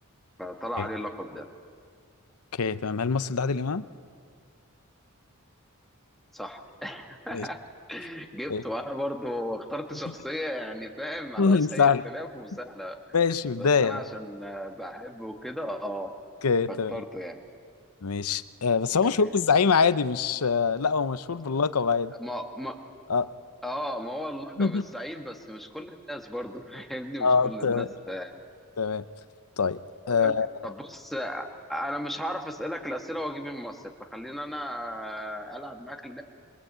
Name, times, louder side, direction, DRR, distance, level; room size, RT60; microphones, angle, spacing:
voice 1, 0.4-1.4 6.3-7.6 7.9-13.0 13.6-16.1 16.9-17.4 19.0-19.3 22.2-22.8 23.6-28.3 30.0-30.3 30.6-36.2, equal, ahead, 3 dB, 1.7 m, -35 dB
voice 2, 2.5-3.8 7.3-7.5 8.5-8.6 11.4-12.1 13.1-14.0 16.4-17.0 18.0-22.1 23.1-23.3 24.6-24.8 27.2-27.9 28.8-29.0 29.6-29.8 30.1-30.7, left 5 dB, 90° left, 14 dB, 0.7 m, -24 dB
25.0 x 22.5 x 8.2 m, 2.1 s
head